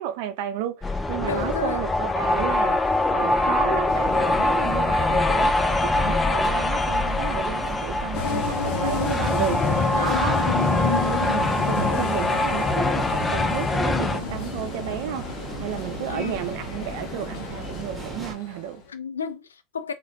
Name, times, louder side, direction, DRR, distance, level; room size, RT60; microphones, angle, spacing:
voice 1, 0.0-18.8, right 10 dB, 65° right, 0.6 m, -32 dB
sound 1, 0.8-14.2, left 2 dB, 15° left, 0.4 m, -24 dB
voice 2, 1.2-1.8 10.0-10.3 16.1-16.4 18.9-19.9, left 6 dB, 85° left, 0.4 m, -32 dB
sound 2, 3.9-18.3, right 1 dB, 15° right, 1.3 m, -37 dB
sound 3, 8.1-18.8, left 4 dB, 60° left, 0.8 m, -31 dB
3.2 x 2.4 x 2.7 m
hypercardioid pair, 80°, 0 cm